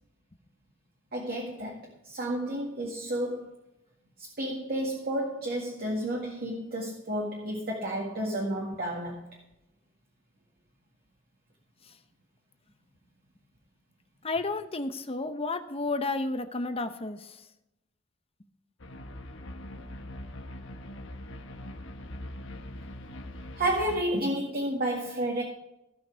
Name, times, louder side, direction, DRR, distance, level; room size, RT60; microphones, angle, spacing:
voice 1, 1.1-3.6 4.2-9.2 23.6-25.4, right 1 dB, 50° right, -1 dB, 1.9 m, -31 dB
voice 2, 14.2-17.3, left 3 dB, 30° left, 9 dB, 0.9 m, -31 dB
sound 1, 18.8-24.0, left 1 dB, 65° left, 1.3 m, -42 dB
16.5 x 5.9 x 4.5 m, 0.90 s
head